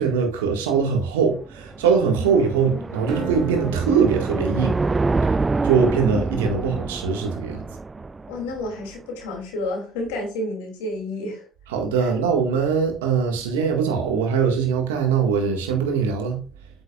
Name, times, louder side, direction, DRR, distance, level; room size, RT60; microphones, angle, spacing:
voice 1, 0.0-4.8 5.6-7.7 11.7-16.4, right 6 dB, 85° right, 1.7 m, -22 dB
sound 1, 1.4-8.7, right 3 dB, 25° right, 0.4 m, -27 dB
voice 2, 2.2-2.9 6.0-6.9 8.3-11.5 12.0-12.1, left 2 dB, 80° left, 2.8 m, -31 dB
Acoustic guitar, 3.1-6.1, right 5 dB, 60° right, 2.4 m, -36 dB
8.3 x 7.8 x 2.4 m
hypercardioid pair, 55°, 0 cm